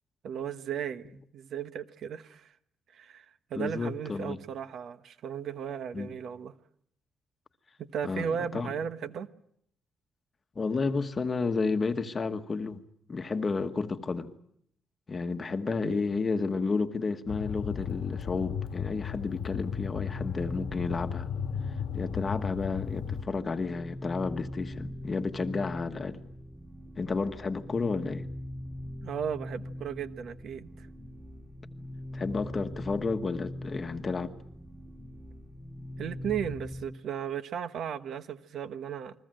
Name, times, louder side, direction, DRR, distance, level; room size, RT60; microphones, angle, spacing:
voice 1, 0.2-1.0 1.3-2.5 2.9-3.2 3.5-6.5 7.8-9.3 15.8-16.0 29.0-30.9 36.0-39.1, right 8 dB, 55° right, 1.1 m, -35 dB
voice 2, 3.5-4.4 5.9-6.1 8.0-8.7 10.5-12.8 13.1-14.3 15.1-21.3 21.9-26.2 27.0-28.2 32.1-34.3, left 4 dB, 25° left, 1.3 m, -31 dB
sound 1, 17.3-23.2, left 8 dB, 85° left, 1.6 m, -35 dB
sound 2, 19.9-36.9, left 1 dB, 5° right, 1.9 m, -42 dB
29.5 x 22.0 x 7.7 m
cardioid pair, 180°, 0 cm